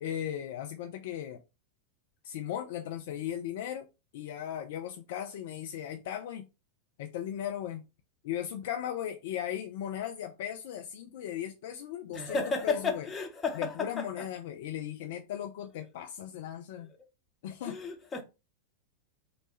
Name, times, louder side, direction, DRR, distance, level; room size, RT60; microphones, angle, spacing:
voice 1, 0.0-1.4 2.2-3.9 4.1-6.4 7.0-7.8 8.2-13.1 13.6-16.9 17.4-17.8, left 10 dB, 55° left, 0.3 m, -37 dB
voice 2, 12.1-14.3 17.6-18.2, left 4 dB, 20° left, 0.8 m, -33 dB
3.0 x 2.1 x 3.1 m
figure-of-eight pair, 90°, 0 cm